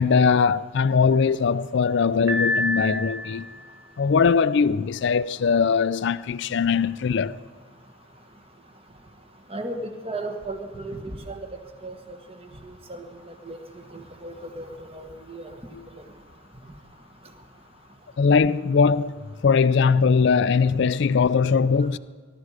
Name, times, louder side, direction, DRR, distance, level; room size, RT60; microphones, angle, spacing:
voice 1, 0.0-3.5 4.0-7.4 15.7-15.8 18.2-19.2 19.4-22.0, left 5 dB, 55° left, 0.4 m, -20 dB
Piano, 2.3-3.6, left 1 dB, 75° right, 3.0 m, -26 dB
voice 2, 9.5-11.4 11.8-11.9 12.6-13.6 13.9-15.5 15.9-16.0, right 2 dB, 30° right, 1.4 m, -35 dB
20.5 x 12.5 x 4.9 m
head